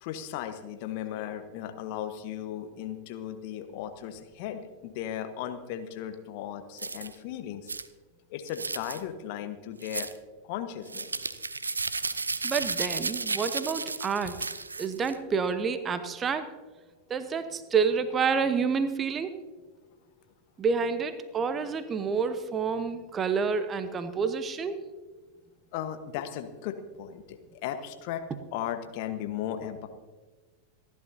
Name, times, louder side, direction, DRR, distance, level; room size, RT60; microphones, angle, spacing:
voice 1, 0.0-7.7 8.3-10.1 10.4-11.1 13.6-13.7 14.2-14.3 25.7-28.2 28.5-29.9, left 10 dB, 45° left, 8 dB, 1.2 m, -36 dB
sound 1, 6.8-7.1 7.7-7.9 8.5-9.0 9.8-10.2 10.9-15.1, right 3 dB, 80° right, 0.5 m, -33 dB
voice 2, 12.4-14.4 14.8-16.5 17.1-19.4 20.6-24.8, right 5 dB, 20° right, 11 dB, 0.9 m, -28 dB
27.5 x 11.0 x 2.8 m, 1.3 s
figure-of-eight pair, 90°, 0 cm